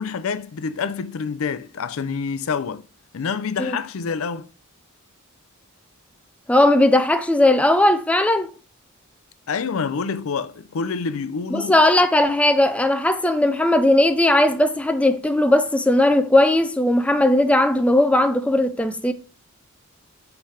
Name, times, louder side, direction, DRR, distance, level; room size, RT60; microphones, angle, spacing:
voice 1, 0.0-2.8 3.1-4.5 9.5-11.8, left 5 dB, 70° left, 0.5 m, -27 dB
voice 2, 6.5-8.5 11.5-19.1, left 1 dB, 5° left, 0.4 m, -18 dB
5.8 x 3.3 x 5.6 m
head